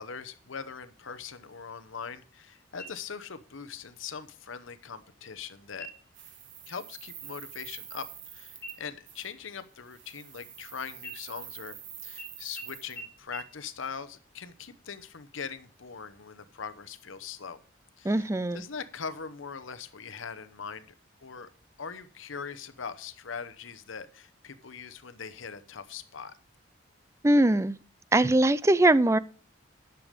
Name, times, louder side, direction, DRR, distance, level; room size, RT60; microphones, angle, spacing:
voice 1, 0.0-5.9 6.7-8.0 8.3-11.8 12.0-17.6 18.0-18.3 18.5-20.9 21.2-21.5 21.8-26.3, left 6 dB, 85° left, 12 dB, 0.9 m, -41 dB
sound 1, 2.8-3.4 3.8-3.9 4.5-5.0 5.7-6.2 6.6-6.9 7.2-8.3 8.6-10.6 11.0-11.8 12.2-12.3 12.6-12.7 13.0-13.1 13.3-13.4, right 1 dB, 60° left, 2.3 m, -46 dB
sound 2, 6.1-8.8 9.1-9.3 9.9-13.0, right 10 dB, 65° right, 1.7 m, -46 dB
voice 2, 18.0-18.6 27.2-27.8 28.1-29.2, right 1 dB, 15° right, 17 dB, 0.4 m, -21 dB
10.5 x 6.9 x 5.1 m, 0.40 s
head